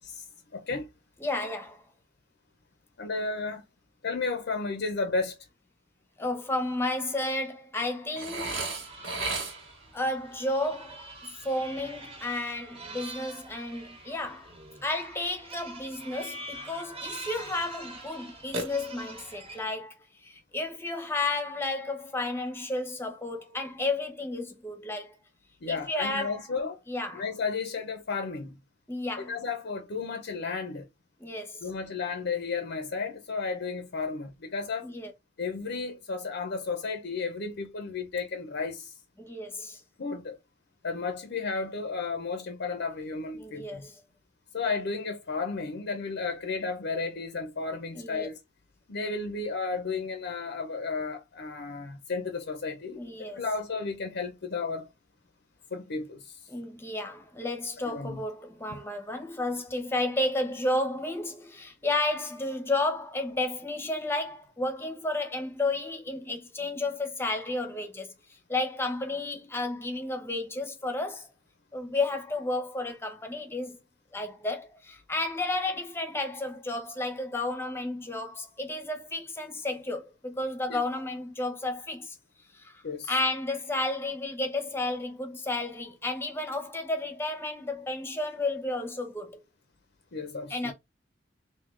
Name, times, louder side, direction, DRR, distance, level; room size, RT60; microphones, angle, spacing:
voice 1, 0.5-0.9 3.0-3.6 4.0-5.3 25.6-26.8 27.1-28.6 29.2-30.8 31.6-34.9 35.4-38.9 40.0-40.4 40.8-43.8 44.5-48.4 48.9-53.0 53.3-54.9 55.7-56.3 57.9-58.2 58.7-58.8 80.7-80.8 82.8-83.1 90.1-90.7, left 4 dB, 60° left, 0.6 m, -33 dB
voice 2, 1.2-1.8 6.2-8.7 9.9-14.6 14.8-25.2 25.7-26.4 26.9-27.3 28.9-29.4 31.2-31.6 34.8-35.1 39.2-39.8 43.4-44.0 47.9-48.3 52.9-53.5 56.5-68.1 68.5-71.3 71.7-73.8 74.1-82.2 82.5-89.4 90.5-90.7, left 2 dB, 10° left, 0.8 m, -32 dB
Burping eructation, 8.2-9.9 18.5-19.3, right 2 dB, 75° right, 1.2 m, -34 dB
sound 1, 8.4-19.6, right 2 dB, 30° right, 1.1 m, -45 dB
3.7 x 2.8 x 3.1 m
head